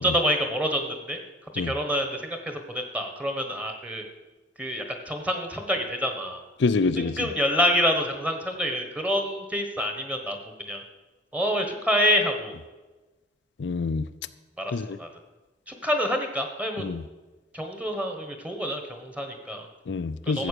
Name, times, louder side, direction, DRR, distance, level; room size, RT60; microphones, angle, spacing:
voice 1, 0.0-1.2 1.5-4.0 4.6-6.4 7.0-10.4 10.7-10.8 11.3-12.5 14.6-15.1 15.7-16.8 17.5-19.7 20.3-20.5, equal, 10° right, 5 dB, 1.4 m, -27 dB
voice 2, 6.6-7.3 13.6-14.1 14.7-15.0 16.8-17.0 19.9-20.5, left 4 dB, 80° left, 11 dB, 0.5 m, -26 dB
13.0 x 8.1 x 6.7 m, 1.2 s
head